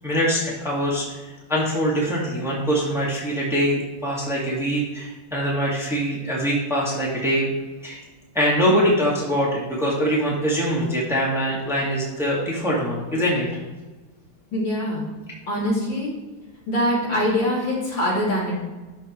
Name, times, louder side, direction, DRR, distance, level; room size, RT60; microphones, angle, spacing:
voice 1, 0.0-1.0 1.5-7.5 7.8-8.0 8.3-13.5, equal, ahead, -5 dB, 2.4 m, -23 dB
voice 2, 14.5-15.1 15.5-16.1 16.7-18.6, left 1 dB, 60° left, -5 dB, 3.7 m, -23 dB
12.5 x 5.6 x 4.8 m, 1.2 s
omnidirectional pair, 2.4 m